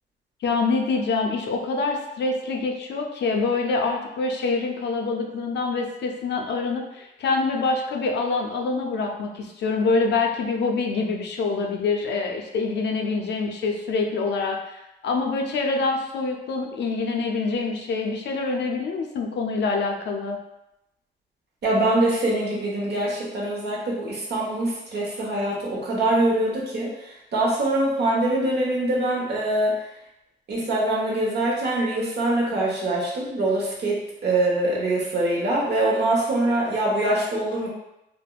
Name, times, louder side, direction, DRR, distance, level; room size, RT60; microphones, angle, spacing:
voice 1, 0.4-20.4, left 3 dB, 60° left, 2 dB, 0.5 m, -25 dB
voice 2, 21.6-29.7 30.5-37.7, right 1 dB, 55° right, -3 dB, 1.0 m, -24 dB
3.4 x 2.0 x 2.3 m, 0.89 s
cardioid pair, 90°, 20 cm